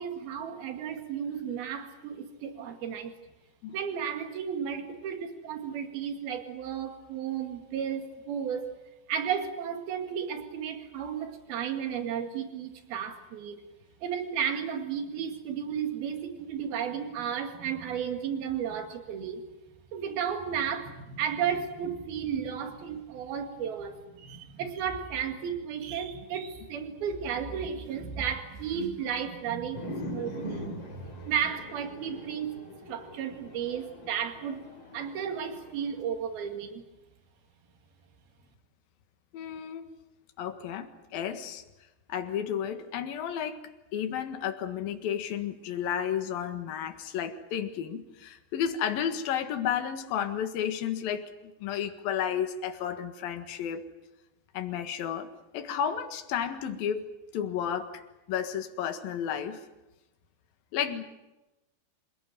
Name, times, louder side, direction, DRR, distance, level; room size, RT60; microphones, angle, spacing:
voice 1, 0.0-3.1 3.7-8.7 9.1-13.6 14.0-19.4 19.9-32.5 32.9-34.7 34.9-36.8, right 8 dB, 75° right, 6 dB, 4.0 m, -33 dB
sound 1, 29.7-36.0, left 1 dB, 35° left, 3.5 m, -42 dB
voice 2, 39.3-39.9 40.4-41.6 42.1-43.6 43.9-53.9 54.5-55.3 55.5-57.1 57.3-58.0 58.3-59.6 60.7-61.0, left 9 dB, 70° left, 7 dB, 3.4 m, -32 dB
26.5 x 17.5 x 9.2 m, 1.0 s
omnidirectional pair, 4.4 m